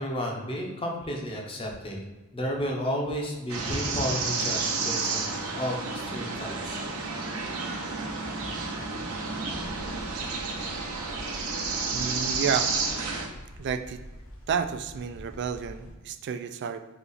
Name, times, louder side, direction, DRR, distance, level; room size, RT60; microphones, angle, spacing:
voice 1, 0.0-2.0 2.3-6.8, equal, 25° left, 0 dB, 0.7 m, -32 dB
sound 1, 3.5-13.3, right 4 dB, 85° right, 0.8 m, -31 dB
sound 2, 9.6-15.9, equal, 65° left, 0.9 m, -45 dB
voice 2, 11.9-12.8 13.6-14.0 14.5-16.9, right 6 dB, 55° right, 10 dB, 0.3 m, -31 dB
4.0 x 3.0 x 4.0 m, 1.2 s
head